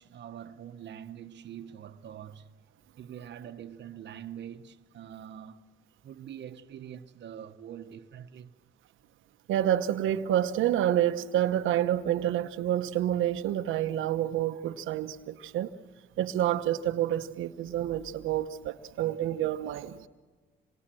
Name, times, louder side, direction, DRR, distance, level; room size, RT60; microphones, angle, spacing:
voice 1, 0.0-2.5 3.0-5.6 6.0-8.6, right 9 dB, 60° right, 1.1 m, -44 dB
voice 2, 9.5-15.1 15.5-15.7 16.2-18.5 19.0-20.1, right 12 dB, 85° right, 1.0 m, -28 dB
27.0 x 23.5 x 7.6 m
cardioid pair, 90°, 20 cm